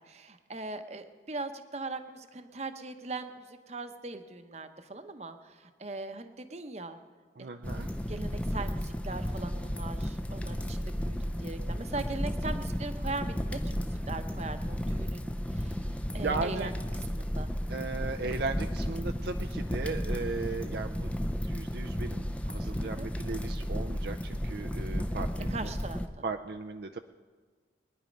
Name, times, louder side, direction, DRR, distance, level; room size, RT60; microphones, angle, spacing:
voice 1, 0.1-7.0 7.4-7.5 8.1-15.9 16.1-17.5 22.8-23.1 25.5-26.0, right 3 dB, 35° right, 8 dB, 0.9 m, -40 dB
voice 2, 7.4-7.9 16.1-16.7 17.7-21.1 21.4-25.7 26.2-27.0, right 4 dB, 60° right, 5 dB, 0.5 m, -36 dB
sound 1, 7.6-26.1, equal, 5° left, 0.5 m, -33 dB
22.0 x 10.5 x 5.3 m, 1.5 s
head